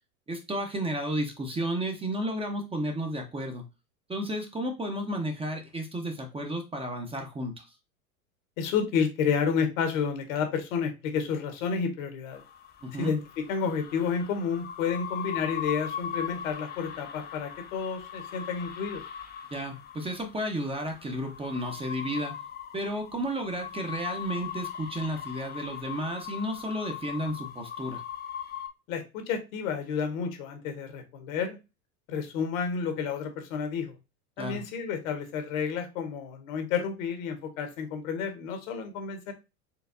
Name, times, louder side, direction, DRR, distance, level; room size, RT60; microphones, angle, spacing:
voice 1, 0.3-3.6 4.1-7.6 12.8-13.1 19.5-22.3 22.7-28.0 34.4-34.6, equal, 15° right, 3 dB, 0.8 m, -32 dB
voice 2, 8.6-12.4 12.9-19.0 28.9-31.6 32.1-34.0 34.4-39.3, left 6 dB, 65° left, 7 dB, 1.3 m, -30 dB
sound 1, 12.3-28.7, left 8 dB, 20° left, 0.6 m, -40 dB
4.5 x 3.3 x 2.6 m, 0.26 s
hypercardioid pair, 90°, 44 cm